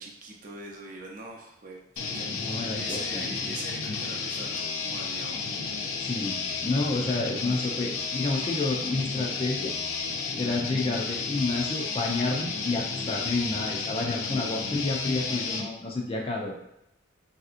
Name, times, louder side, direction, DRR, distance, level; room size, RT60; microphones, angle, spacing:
voice 1, 0.0-5.4, right 2 dB, 40° right, 0 dB, 0.5 m, -43 dB
sound 1, 2.0-15.7, left 4 dB, 85° left, 0.4 m, -32 dB
voice 2, 2.4-3.3 6.0-6.4 6.6-9.7 10.4-16.6, left 3 dB, 25° left, 0 dB, 0.4 m, -29 dB
3.3 x 2.7 x 2.4 m, 0.82 s
head